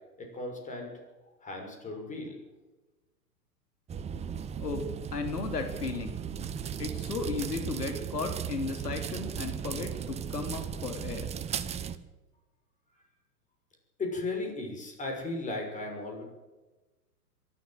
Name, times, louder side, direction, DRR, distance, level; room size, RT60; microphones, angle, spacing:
voice 1, 0.2-0.9 1.4-2.4 14.0-16.2, left 2 dB, 15° left, 2 dB, 6.2 m, -36 dB
sound 1, 3.9-12.0, right 8 dB, 15° right, 0.9 m, -36 dB
voice 2, 4.6-6.2 6.8-11.3, left 4 dB, 80° left, 5 dB, 3.2 m, -35 dB
23.0 x 14.0 x 8.1 m, 1.1 s
hypercardioid pair, 110°, 47 cm